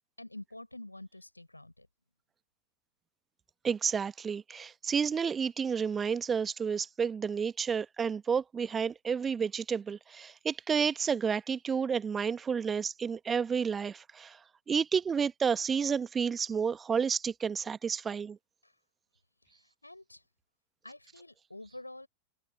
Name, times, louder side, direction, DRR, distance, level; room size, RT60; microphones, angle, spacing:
voice 1, 0.2-1.9 18.6-18.7 19.5-20.2 20.8-22.1, left 2 dB, 85° left, 5.8 m, -48 dB
voice 2, 3.6-14.4 14.7-18.4, right 6 dB, 20° right, 1.4 m, -31 dB
figure-of-eight pair, 90°, 0 cm